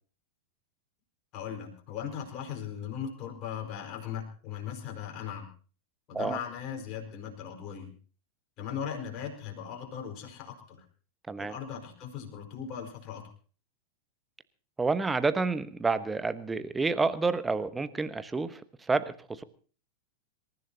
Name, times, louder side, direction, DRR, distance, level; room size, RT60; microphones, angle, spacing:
voice 1, 1.3-5.5 6.1-7.9 8.6-10.8 11.4-13.3, left 8 dB, 35° left, 2 dB, 4.8 m, -38 dB
voice 2, 14.8-18.6 18.9-19.4, right 4 dB, 10° right, 13 dB, 1.1 m, -29 dB
26.5 x 15.0 x 2.9 m, 0.40 s
figure-of-eight pair, 90°, 0 cm